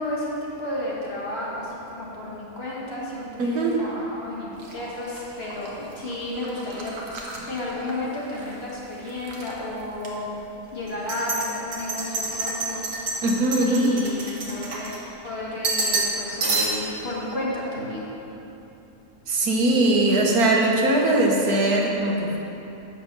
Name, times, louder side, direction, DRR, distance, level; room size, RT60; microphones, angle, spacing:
voice 1, 0.0-6.9 7.3-10.3 10.7-12.9 13.7-14.9 15.2-18.1, left 1 dB, 40° left, -6 dB, 1.8 m, -32 dB
voice 2, 3.4-3.8 7.4-7.5 13.2-13.9 19.3-22.4, right 2 dB, 75° right, -1 dB, 1.6 m, -21 dB
Hot Drink being Poured and Stirred, 4.6-8.6 8.9-9.5 10.0-10.1 10.9-15.3 15.6-16.2 16.4-17.0, right 3 dB, 60° right, 1.4 m, -30 dB
7.9 x 6.0 x 5.9 m, 2.9 s
omnidirectional pair, 1.6 m